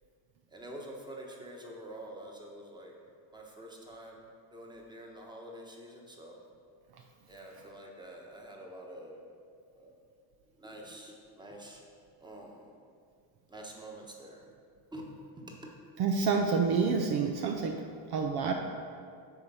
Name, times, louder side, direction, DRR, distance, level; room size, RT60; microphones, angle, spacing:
voice 1, 0.5-2.9 3.3-4.2 4.5-6.4 7.3-9.2 9.7-9.9 10.6-11.8 12.2-12.7 13.5-14.4 14.9-15.1 15.4-15.7, right 1 dB, 10° right, 0 dB, 1.2 m, -47 dB
voice 2, 16.0-17.8 18.1-18.5, right 5 dB, 50° right, 3 dB, 0.7 m, -28 dB
9.3 x 3.3 x 5.5 m, 2.2 s
supercardioid pair, 95°, 47 cm